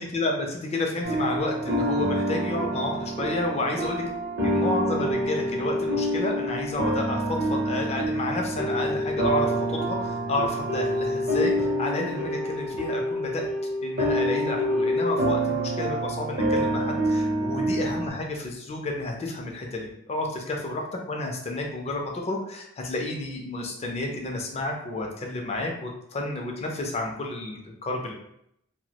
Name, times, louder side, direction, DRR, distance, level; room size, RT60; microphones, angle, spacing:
voice 1, 0.0-4.0 4.4-13.4 13.8-19.8 20.1-28.1, left 2 dB, 30° left, 1 dB, 0.4 m, -31 dB
sound 1, 1.0-18.1, equal, 50° right, 0.5 m, -27 dB
2.2 x 2.0 x 2.7 m, 0.77 s
head